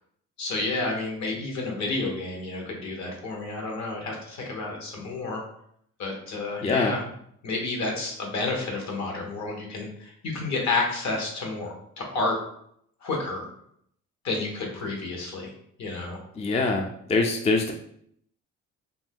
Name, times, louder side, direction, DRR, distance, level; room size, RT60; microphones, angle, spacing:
voice 1, 0.4-5.4 6.0-7.0 7.4-12.4 13.0-13.5 14.2-15.5 15.8-16.2, left 3 dB, 65° left, 0 dB, 1.0 m, -30 dB
voice 2, 6.6-6.9 16.4-17.7, left 3 dB, 20° left, 3 dB, 0.3 m, -24 dB
2.6 x 2.2 x 3.5 m, 0.68 s
cardioid pair, 90°, 30 cm